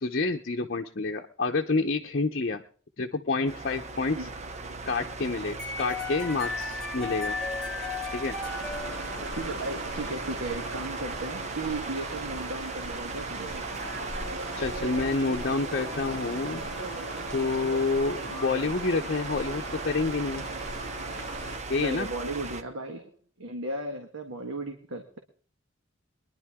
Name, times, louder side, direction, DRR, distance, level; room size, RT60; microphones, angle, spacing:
voice 1, 0.0-2.6 3.0-4.2 4.9-7.4 8.1-8.4 14.6-16.6 17.3-20.4 21.7-22.1, left 3 dB, 50° left, 1 dB, 0.8 m, -28 dB
sound 1, 3.5-22.6, right 3 dB, 35° right, 0.9 m, -38 dB
sound 2, 5.6-9.7, left 4 dB, 5° left, 1.9 m, -35 dB
sound 3, 8.4-21.6, right 1 dB, 65° right, 2.8 m, -38 dB
voice 2, 9.3-13.7 21.7-25.2, right 2 dB, 85° right, 4 dB, 1.7 m, -36 dB
23.0 x 10.5 x 3.6 m, 0.42 s
head